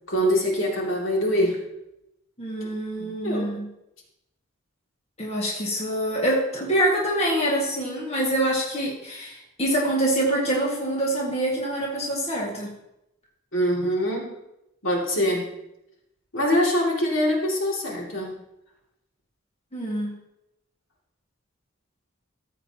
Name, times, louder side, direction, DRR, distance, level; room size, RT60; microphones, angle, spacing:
voice 1, 0.1-1.6 2.6-2.7 3.2-3.5 13.5-14.3 14.8-15.5 16.3-18.4, equal, 75° left, -2 dB, 2.6 m, -24 dB
voice 2, 2.4-3.7 5.2-12.7 19.7-20.1, right 1 dB, 30° left, -3 dB, 1.9 m, -25 dB
14.0 x 8.0 x 2.9 m, 0.84 s
head